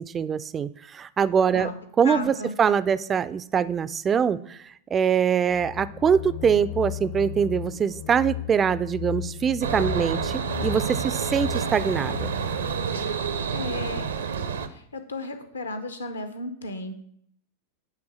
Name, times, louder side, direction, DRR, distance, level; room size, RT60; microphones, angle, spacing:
voice 1, 0.0-1.7 2.0-4.6 4.9-12.3, right 7 dB, 20° right, 17 dB, 0.3 m, -23 dB
voice 2, 1.5-2.6 13.5-14.1 14.7-17.0, left 2 dB, 75° left, 8 dB, 0.9 m, -34 dB
sound 1, 5.5-13.2, left 15 dB, 40° left, 0.6 m, -36 dB
sound 2, 9.6-14.7, right 6 dB, 70° right, 0.6 m, -29 dB
8.8 x 3.5 x 6.2 m, 0.69 s
figure-of-eight pair, 90°, 0 cm